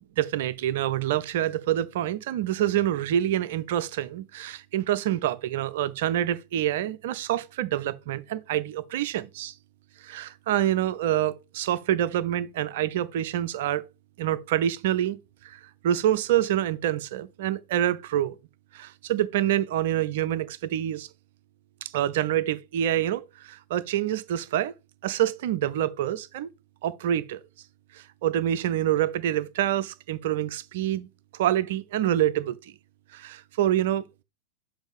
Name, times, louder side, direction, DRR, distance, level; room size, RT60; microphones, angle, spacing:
voice 1, 0.2-9.5 10.0-13.8 14.2-15.2 15.4-18.3 18.7-21.1 21.8-24.7 25.0-26.5 26.8-27.4 27.9-31.1 31.4-32.6 33.1-34.0, right 11 dB, 55° right, 0.5 m, -26 dB
7.1 x 2.6 x 5.2 m
figure-of-eight pair, 90°, 0 cm